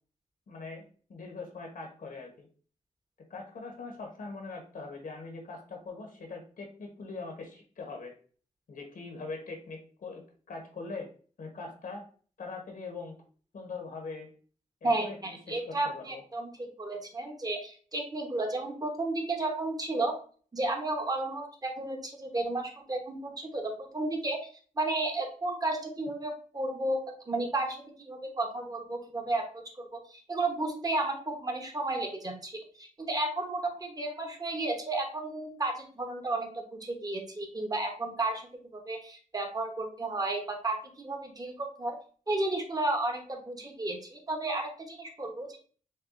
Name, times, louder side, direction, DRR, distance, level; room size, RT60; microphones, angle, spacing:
voice 1, 0.5-2.5 3.3-8.1 8.7-11.1 11.4-12.0 12.4-13.2 13.5-14.3 14.8-16.2, left 3 dB, 80° left, 2 dB, 1.1 m, -42 dB
voice 2, 14.8-20.2 20.5-24.5 24.8-38.5 38.7-42.0 42.3-45.6, right 2 dB, 25° right, 3 dB, 1.0 m, -33 dB
6.5 x 2.4 x 2.5 m, 0.42 s
wide cardioid pair, 85°, 14 cm